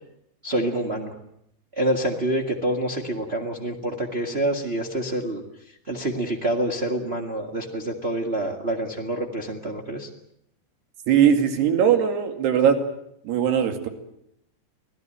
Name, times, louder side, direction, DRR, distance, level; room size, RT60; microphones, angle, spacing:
voice 1, 0.4-1.1 1.7-5.4 5.9-10.1, right 1 dB, 55° right, 1 dB, 0.6 m, -27 dB
voice 2, 11.1-12.8 13.3-13.9, right 8 dB, 75° right, 6 dB, 4.4 m, -20 dB
26.0 x 17.5 x 9.1 m, 0.78 s
omnidirectional pair, 4.8 m